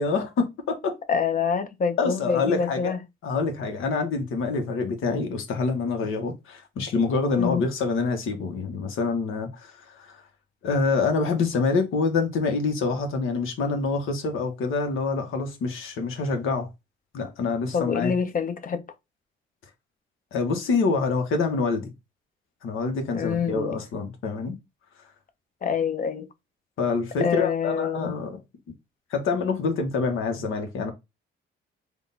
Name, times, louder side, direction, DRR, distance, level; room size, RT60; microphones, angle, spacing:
voice 1, 0.0-1.0 2.0-2.9 3.2-9.7 10.1-10.2 10.6-16.7 17.1-18.1 20.3-21.9 22.6-24.5 26.8-28.4 29.1-30.9, left 4 dB, 75° left, 1.1 m, -26 dB
voice 2, 1.1-3.0 7.4-7.7 17.7-18.8 23.1-23.8 25.6-26.3 27.2-28.2, left 6 dB, 40° left, 0.7 m, -26 dB
3.5 x 2.3 x 4.0 m
cardioid pair, 80°, 21 cm